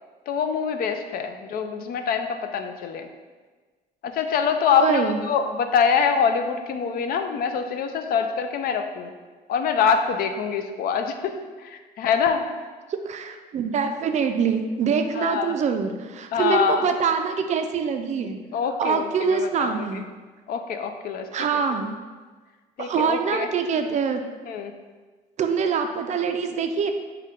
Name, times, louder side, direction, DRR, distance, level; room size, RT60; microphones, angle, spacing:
voice 1, 0.3-3.1 4.0-9.1 9.5-11.3 11.6-12.5 15.2-15.5 16.3-16.9 18.5-19.9 20.5-21.3 22.8-23.5 24.5-24.7, left 6 dB, 60° left, 7 dB, 0.4 m, -24 dB
voice 2, 4.7-5.2 12.9-18.4 18.8-20.0 21.3-21.9 22.8-24.2 25.4-26.9, right 6 dB, 45° right, 6 dB, 0.4 m, -24 dB
5.2 x 2.2 x 3.6 m, 1.4 s
cardioid pair, 110°, 17 cm